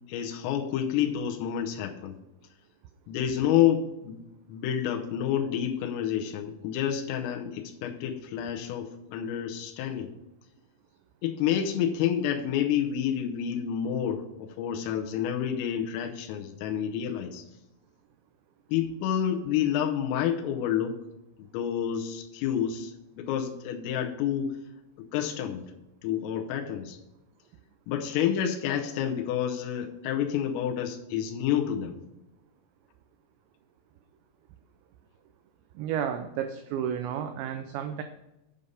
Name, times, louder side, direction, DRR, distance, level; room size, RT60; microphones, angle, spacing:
voice 1, 0.1-2.2 3.1-4.2 4.5-10.1 11.2-17.4 18.7-21.0 21.4-24.5 25.0-25.7 26.0-27.0 27.9-32.0, left 9 dB, 90° left, 2 dB, 3.5 m, -29 dB
voice 2, 35.8-38.0, right 9 dB, 85° right, 8 dB, 2.5 m, -32 dB
9.5 x 5.5 x 5.1 m, 0.93 s
omnidirectional pair, 5.8 m